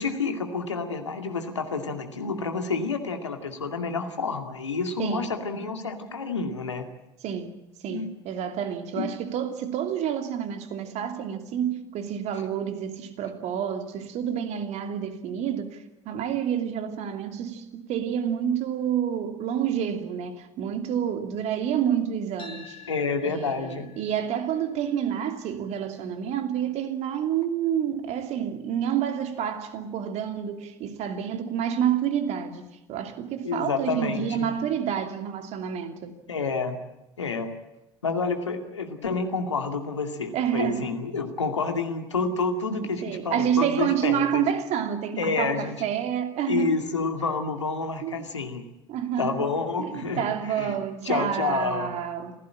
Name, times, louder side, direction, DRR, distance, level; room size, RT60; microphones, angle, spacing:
voice 1, 0.0-6.9 7.9-8.1 9.0-9.1 12.3-12.4 22.9-23.9 33.4-34.5 36.3-36.8 37.2-37.5 38.0-44.4 45.2-45.8 46.5-48.6 49.2-50.3 50.5-50.8 51.0-51.9, left 4 dB, 80° left, 2.4 m, -29 dB
voice 2, 7.2-7.5 7.8-22.8 23.2-36.1 40.3-40.9 43.0-46.8 48.0-48.2 48.9-49.4 49.8-52.3, right 9 dB, 50° right, 2.8 m, -28 dB
sound 1, 22.4-30.6, left 5 dB, 35° left, 6.6 m, -52 dB
26.5 x 16.5 x 8.9 m
figure-of-eight pair, 65°, 15 cm